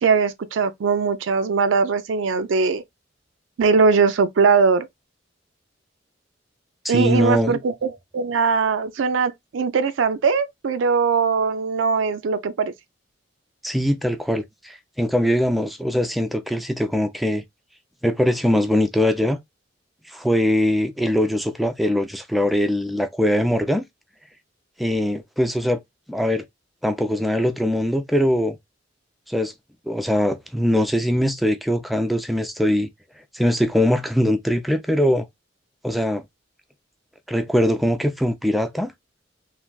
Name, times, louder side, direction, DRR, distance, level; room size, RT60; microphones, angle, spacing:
voice 1, 0.0-2.8 3.6-4.9 6.9-12.7, right 5 dB, 90° right, 0.4 m, -20 dB
voice 2, 6.8-7.6 13.6-17.4 18.0-19.4 20.1-23.8 24.8-25.8 26.1-26.4 26.8-28.6 29.3-29.5 29.9-32.9 33.3-35.3 35.8-36.2 37.3-38.9, equal, ahead, 0.3 m, -21 dB
3.2 x 2.5 x 2.2 m
head